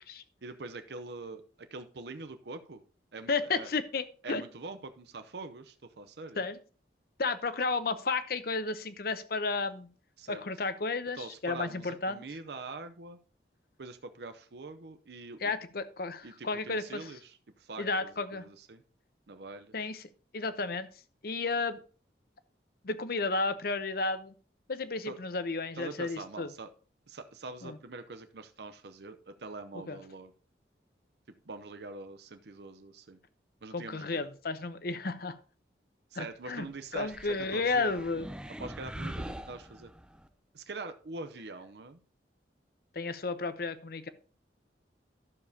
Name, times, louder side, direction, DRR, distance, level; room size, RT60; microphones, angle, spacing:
voice 1, 0.4-2.8 3.1-3.7 4.2-6.4 10.2-10.4 11.1-13.2 13.8-15.5 16.2-18.8 19.3-19.9 25.0-25.2 25.8-26.7 27.1-30.3 31.5-33.2 33.6-34.3 36.1-38.0 38.6-39.9 40.5-42.0, right 3 dB, 65° right, 8 dB, 0.7 m, -44 dB
voice 2, 3.3-4.4 6.4-6.6 7.2-9.9 10.3-12.2 15.4-17.1 17.8-18.5 19.7-20.0 20.3-20.9 21.2-21.8 22.8-24.3 24.7-26.5 27.6-27.8 29.9-30.0 33.7-35.4 36.1-36.7 36.9-38.3 42.9-44.1, left 3 dB, 55° left, 12 dB, 0.7 m, -32 dB
sound 1, 36.9-40.3, right 1 dB, 5° right, 0.4 m, -43 dB
12.0 x 7.0 x 2.8 m, 0.38 s
head